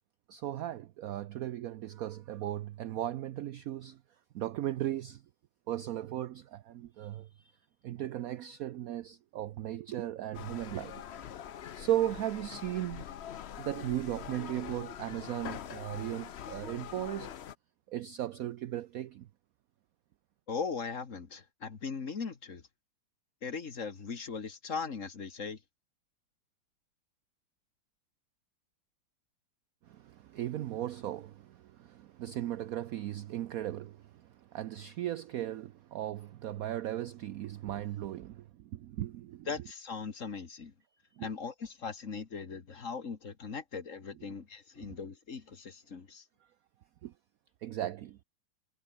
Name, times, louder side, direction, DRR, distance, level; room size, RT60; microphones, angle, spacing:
voice 1, 0.3-4.0 4.3-5.2 5.7-7.5 7.8-11.0 11.7-13.0 13.6-17.3 17.9-19.3 29.9-39.5 41.1-41.3 44.9-45.0 47.0-47.1 47.6-48.2, right 12 dB, 75° right, 0.8 m, -37 dB
sound 1, 10.3-17.6, left 9 dB, 85° left, 0.5 m, -44 dB
voice 2, 20.5-22.6 23.4-25.6 39.5-40.7 41.2-46.2, left 5 dB, 40° left, 2.0 m, -39 dB
omnidirectional pair, 2.2 m